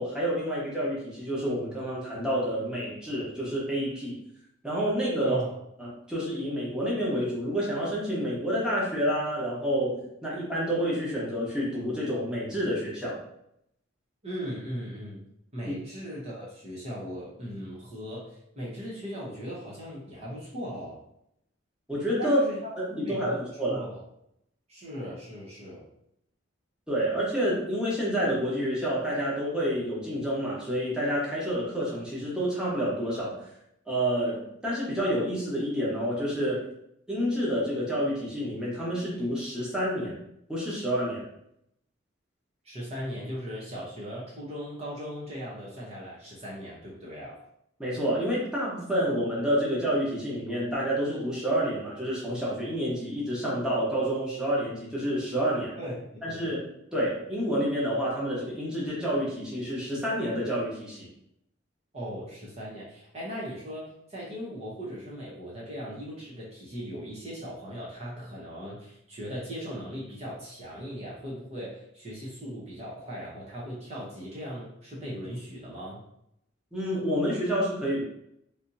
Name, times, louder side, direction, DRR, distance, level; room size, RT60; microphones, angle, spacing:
voice 1, 0.0-4.2 4.6-5.4 5.8-13.2 15.7-15.8 21.9-22.4 22.9-23.8 26.9-33.5 33.9-36.6 37.1-40.2 40.5-41.2 47.8-55.7 56.2-56.6 56.9-61.1 76.7-78.0, equal, 5° right, -7 dB, 1.0 m, -29 dB
voice 2, 5.2-5.6 14.2-15.2 15.5-21.0 22.2-22.7 23.0-24.0 24.7-25.8 42.6-47.4 55.8-56.5 61.9-76.0, equal, 35° right, -6 dB, 0.8 m, -38 dB
3.4 x 2.7 x 2.7 m, 0.76 s
head